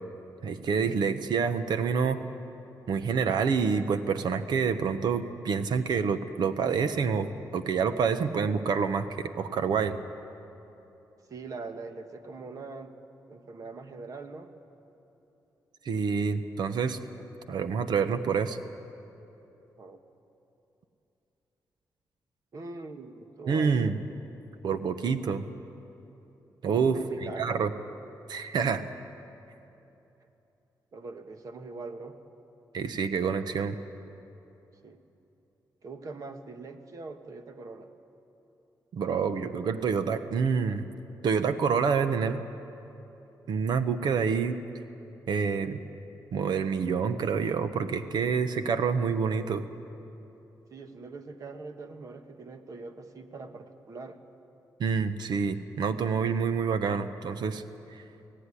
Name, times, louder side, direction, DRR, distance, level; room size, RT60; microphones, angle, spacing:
voice 1, 0.4-2.2 2.9-10.0 15.8-17.0 17.5-18.6 23.5-24.0 24.6-25.5 26.6-27.0 27.4-27.7 28.3-28.9 32.7-33.8 38.9-40.8 41.2-42.4 43.5-44.6 45.3-45.8 46.3-49.6 54.8-57.6, right 6 dB, 75° right, 10 dB, 1.0 m, -27 dB
voice 2, 11.3-13.0 13.3-14.5 19.8-20.0 22.5-23.9 26.6-27.6 30.9-32.2 34.8-35.0 35.8-37.9 50.7-54.2, right 3 dB, 50° right, 7 dB, 1.5 m, -42 dB
23.5 x 17.0 x 9.9 m, 3.0 s
cardioid pair, 110°, 7 cm